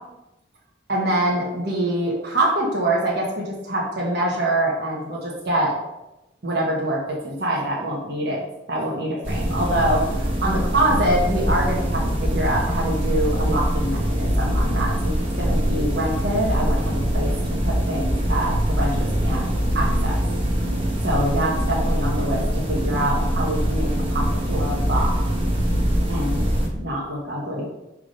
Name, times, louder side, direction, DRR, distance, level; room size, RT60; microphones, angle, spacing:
voice 1, 0.9-5.7 6.4-8.4 8.7-17.3 17.6-19.5 19.7-20.2 21.0-22.4 22.7-25.2 26.1-27.7, right 1 dB, 60° right, -4 dB, 1.3 m, -25 dB
sound 1, 9.2-26.7, equal, 30° right, 1.1 m, -23 dB
5.7 x 3.6 x 5.1 m, 0.95 s
head